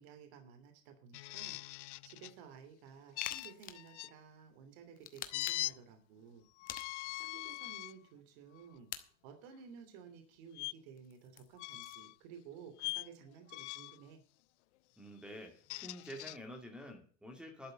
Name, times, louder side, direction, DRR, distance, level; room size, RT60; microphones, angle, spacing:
voice 1, 0.0-6.4 7.2-14.2, right 7 dB, 50° right, 6 dB, 2.9 m, -55 dB
sound 1, 1.1-2.3 3.2-4.1 5.3-5.7 6.6-7.9 8.5-8.8 10.5-10.7 11.6-12.1 12.8-13.1 13.5-14.0 15.4-16.4, left 21 dB, 65° left, 0.5 m, -41 dB
sound 2, 3.2-3.9 5.0-5.8 6.7-7.3 8.9-9.0 11.0-12.1, left 10 dB, 20° left, 1.0 m, -46 dB
voice 2, 15.0-17.7, equal, ahead, 4 dB, 2.4 m, -48 dB
12.0 x 6.8 x 7.7 m, 0.42 s
supercardioid pair, 155°, 39 cm